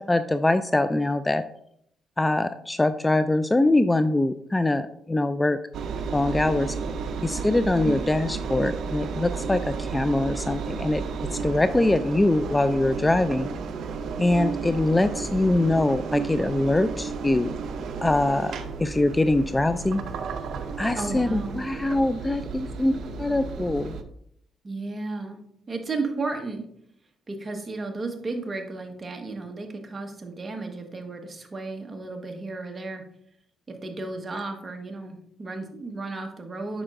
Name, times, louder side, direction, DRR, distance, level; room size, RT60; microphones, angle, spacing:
voice 1, 0.0-1.4 2.2-5.6 6.1-6.8 7.2-11.0 11.3-13.5 14.2-17.5 18.0-18.5 18.8-20.0 20.8-24.0, left 2 dB, 15° left, 11 dB, 0.3 m, -23 dB
Engine, 5.7-24.0, right 5 dB, 70° right, 0.6 m, -33 dB
voice 2, 7.6-7.9 20.9-21.6 24.6-25.4 25.7-26.6 27.3-33.0 33.7-36.8, right 3 dB, 30° right, 4 dB, 1.2 m, -33 dB
8.7 x 6.1 x 2.5 m, 0.71 s
cardioid pair, 90°, 0 cm